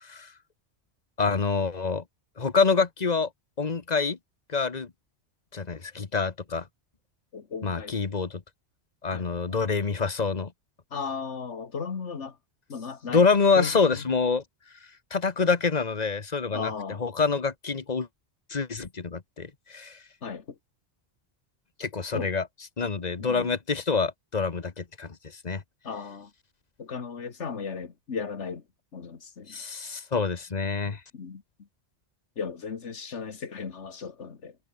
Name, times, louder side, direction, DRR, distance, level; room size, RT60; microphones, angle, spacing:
voice 1, 1.2-2.0 2.4-3.3 3.6-4.2 4.5-4.9 5.5-6.6 7.6-8.4 9.0-10.5 13.1-14.4 15.1-16.7 17.0-18.1 18.5-20.0 21.8-22.4 22.8-25.1 25.4-25.6 29.5-31.0, left 4 dB, 40° left, 1.3 m, -26 dB
voice 2, 7.3-8.0 9.1-9.6 10.9-12.4 12.7-13.3 13.6-14.1 16.5-17.0 20.2-20.5 22.1-22.3 23.2-23.5 25.8-26.3 26.8-28.6 28.9-29.6 31.1-31.4 32.4-34.6, left 5 dB, 85° left, 1.9 m, -36 dB
omnidirectional pair, 1.2 m